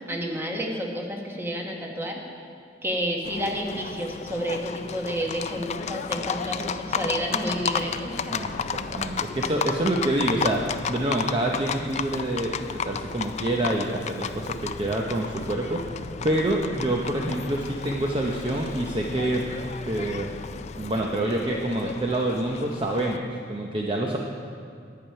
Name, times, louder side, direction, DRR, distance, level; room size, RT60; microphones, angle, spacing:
voice 1, 0.1-2.2 2.8-8.1 9.4-9.5, equal, 15° right, 0 dB, 1.3 m, -30 dB
Livestock farm animals working animals, 3.2-23.2, left 6 dB, 40° left, 0.3 m, -33 dB
voice 2, 8.3-10.6 10.9-20.3 20.8-24.2, right 1 dB, 30° right, 0 dB, 0.7 m, -27 dB
11.0 x 8.6 x 5.6 m, 2.4 s
head